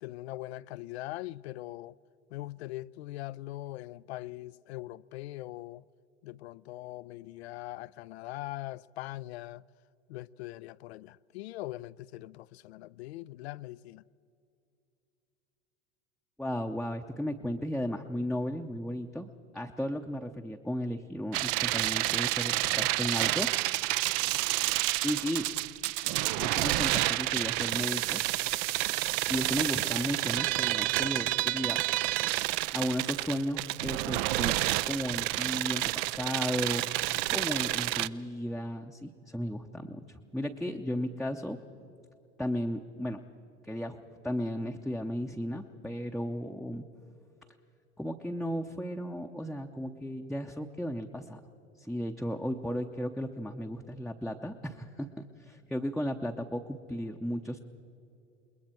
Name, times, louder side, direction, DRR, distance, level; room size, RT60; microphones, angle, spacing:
voice 1, 0.0-2.0 2.3-5.8 6.2-9.6 10.1-14.0, left 16 dB, 65° left, 0.5 m, -41 dB
voice 2, 16.4-23.9 25.0-25.5 26.4-28.2 29.3-31.8 32.7-41.6 42.4-43.2 43.6-46.8 48.0-51.4 51.8-57.6, equal, ahead, 0.7 m, -35 dB
sound 1, 21.3-38.1, right 18 dB, 45° right, 0.5 m, -29 dB
28.0 x 20.5 x 4.5 m
hypercardioid pair, 85°, 35 cm